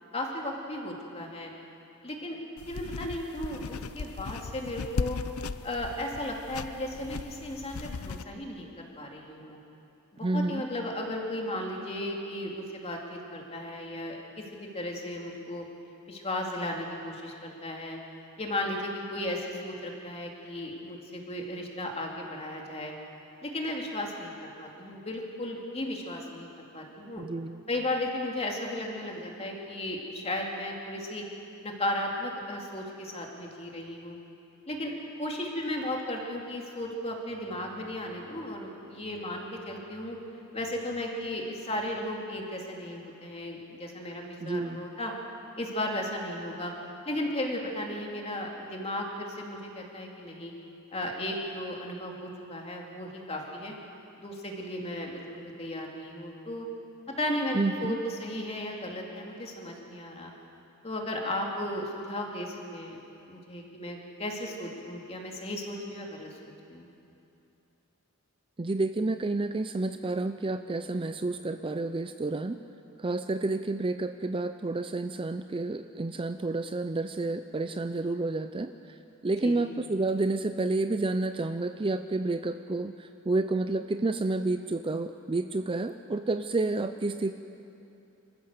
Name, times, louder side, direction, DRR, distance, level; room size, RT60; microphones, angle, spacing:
voice 1, 0.1-1.5 2.0-2.4 2.7-5.2 5.6-9.6 10.1-14.2 14.5-15.6 16.1-18.0 18.4-22.9 23.4-26.5 26.7-27.2 27.7-31.3 31.6-34.2 34.7-34.9 35.2-40.2 40.5-45.1 45.6-46.7 47.1-50.5 50.9-53.7 54.2-56.7 57.2-60.3 60.8-63.0 63.3-66.3 66.7-66.9 79.4-79.6, left 1 dB, 30° left, 0 dB, 2.6 m, -35 dB
sound 1, 2.6-8.2, left 4 dB, 85° left, 0.6 m, -37 dB
voice 2, 10.2-10.6 27.2-27.6 44.4-44.9 57.5-58.0 68.6-72.6 73.0-79.0 79.2-87.3, right 2 dB, 25° right, 9 dB, 0.5 m, -30 dB
27.0 x 15.0 x 6.7 m, 2.8 s
head